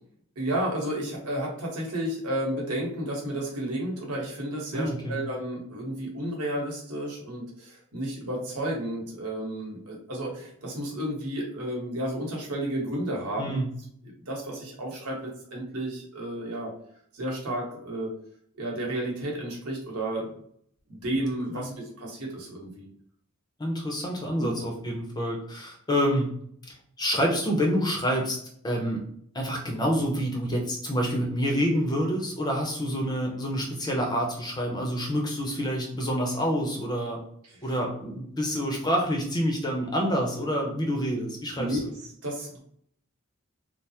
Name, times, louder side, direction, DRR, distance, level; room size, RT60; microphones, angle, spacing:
voice 1, 0.4-13.6 14.0-16.7 17.1-18.1 18.6-20.3 20.9-21.7 22.0-22.9 24.4-24.5 41.6-41.8 42.2-42.6, right 1 dB, 90° right, -1 dB, 1.1 m, -32 dB
voice 2, 4.7-5.2 13.4-13.7 21.5-21.6 23.6-26.3 26.7-28.4 28.6-29.0 29.3-37.2 37.6-41.8, equal, 20° left, 0 dB, 0.5 m, -27 dB
3.2 x 2.0 x 2.7 m, 0.65 s
head